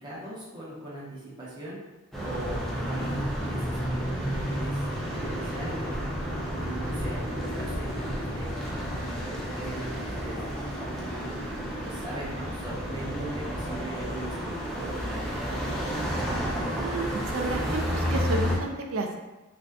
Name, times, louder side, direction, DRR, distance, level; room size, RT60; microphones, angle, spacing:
voice 1, 0.0-1.8 2.2-6.0 6.5-10.4 11.0-11.5 11.8-15.5, right 1 dB, 20° right, -7 dB, 1.0 m, -40 dB
sound 1, 2.1-18.6, equal, ahead, 0.5 m, -31 dB
sound 2, 4.2-17.9, equal, 60° left, 0.8 m, -46 dB
voice 2, 16.7-19.2, right 2 dB, 80° right, 3 dB, 0.5 m, -32 dB
3.8 x 2.5 x 2.3 m, 1.1 s
head